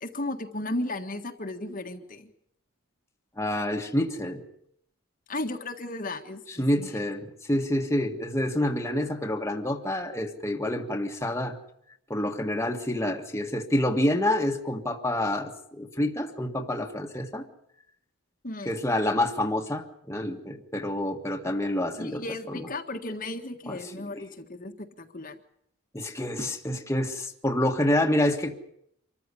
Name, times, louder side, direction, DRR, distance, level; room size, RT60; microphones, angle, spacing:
voice 1, 0.0-2.3 5.3-6.9 18.4-18.8 21.9-25.4, left 2 dB, 40° left, 5 dB, 1.7 m, -35 dB
voice 2, 3.4-4.4 6.6-11.6 12.1-17.4 18.7-22.6 23.7-24.1 25.9-28.5, left 1 dB, 15° left, 3 dB, 1.7 m, -28 dB
26.0 x 14.0 x 9.9 m, 0.72 s
head